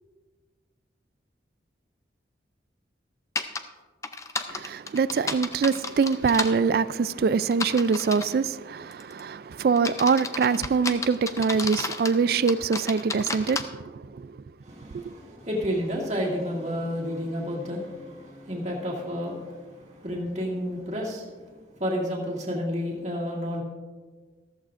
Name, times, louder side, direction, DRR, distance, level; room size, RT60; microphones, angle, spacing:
sound 1, 3.4-3.6 4.0-6.5 7.5-8.3 8.9-9.2 9.8-12.2 12.5-13.6, left 4 dB, 15° left, 0.5 m, -31 dB
voice 1, 4.5-14.3 14.9-15.0, right 5 dB, 55° right, 0.3 m, -24 dB
voice 2, 14.6-19.5 20.0-21.2 21.8-23.6, equal, 40° right, 2.1 m, -30 dB
14.5 x 14.0 x 2.5 m
head